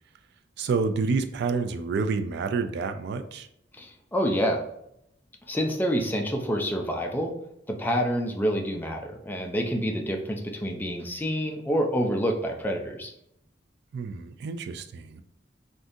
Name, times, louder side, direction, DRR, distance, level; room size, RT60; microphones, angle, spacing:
voice 1, 0.6-3.5 13.9-15.2, right 4 dB, 60° right, 8 dB, 0.3 m, -28 dB
voice 2, 3.7-4.6 5.5-7.3 7.7-13.1, equal, 10° left, 1 dB, 0.4 m, -27 dB
3.6 x 2.6 x 2.5 m, 0.76 s
head